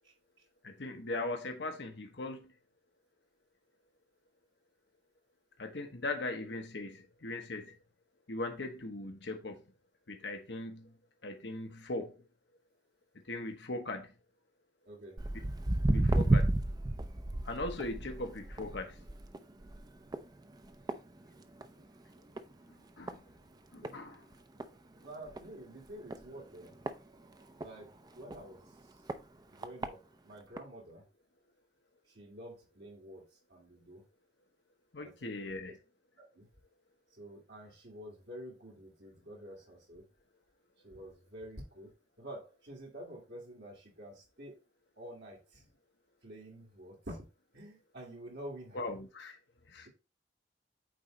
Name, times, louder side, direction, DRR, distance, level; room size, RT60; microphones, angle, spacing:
voice 1, 0.6-2.5 5.6-7.8 8.3-9.6 10.1-10.9 11.2-12.2 13.2-14.1 15.3-15.4 15.9-16.5 17.4-19.0 23.0-23.2 23.7-24.2 34.9-35.8 48.7-49.4 49.7-49.9, left 2 dB, 80° left, 1.2 m, -39 dB
voice 2, 14.9-15.2 23.8-24.0 25.0-26.8 27.6-28.6 29.5-31.0 32.1-34.0 35.0-35.8 36.2-36.5 37.2-40.0 40.8-44.6 45.0-45.6 46.2-47.2 47.5-48.9, right 1 dB, 75° right, 2.3 m, -49 dB
Walk footsteps, 15.2-21.8 22.2-22.5 23.1-23.2 23.8-23.9 24.3-24.4 24.6-24.7 25.3-25.5 26.1-27.7 28.3-28.4 29.1-29.2 29.6-29.9 30.6-30.7, right 2 dB, 25° right, 0.6 m, -32 dB
9.0 x 3.9 x 3.2 m
head